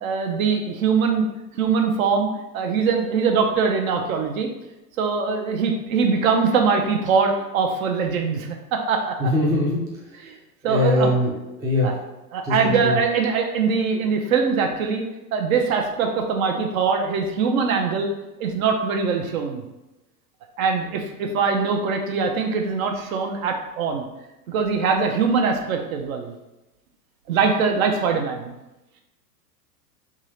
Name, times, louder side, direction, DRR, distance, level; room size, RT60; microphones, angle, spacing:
voice 1, 0.0-1.3 1.6-2.3 2.5-4.5 5.0-9.2 10.3-10.4 10.6-11.1 11.8-11.9 12.3-15.0 15.3-18.1 18.4-19.6 20.6-24.0 24.5-26.3 27.3-28.5, right 5 dB, 60° right, 3 dB, 0.7 m, -22 dB
voice 2, 9.2-9.9 10.6-11.3 11.6-11.9 12.4-13.0, left 1 dB, 10° right, -4 dB, 0.4 m, -21 dB
3.6 x 2.8 x 3.1 m, 0.98 s
hypercardioid pair, 105°, 48 cm